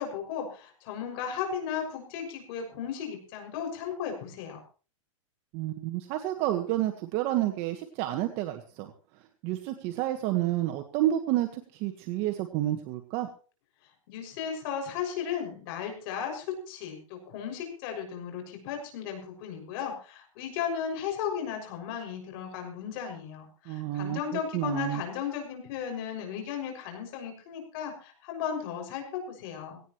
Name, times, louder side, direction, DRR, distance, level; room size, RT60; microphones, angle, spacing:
voice 1, 0.0-4.6 14.1-29.8, left 8 dB, 45° left, 3 dB, 6.5 m, -35 dB
voice 2, 5.5-8.9 9.4-13.3 23.7-25.0, right 14 dB, 35° right, 5 dB, 1.5 m, -30 dB
18.0 x 17.5 x 3.1 m, 0.37 s
supercardioid pair, 155°, 17 cm